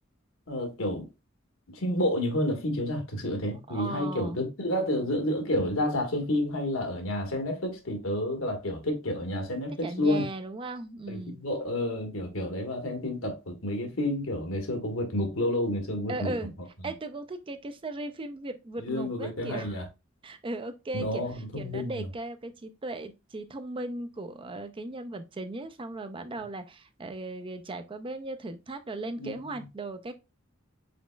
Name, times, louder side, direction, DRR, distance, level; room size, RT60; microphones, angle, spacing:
voice 1, 0.5-1.1 1.7-10.2 11.1-16.3 18.8-19.8 20.9-22.0 29.2-29.6, left 1 dB, 85° left, 1.4 m, -30 dB
voice 2, 3.7-4.4 9.7-11.4 16.1-16.5 16.8-19.9 20.2-21.2 21.6-30.2, right 2 dB, 25° right, 0.5 m, -37 dB
5.1 x 4.1 x 2.2 m
head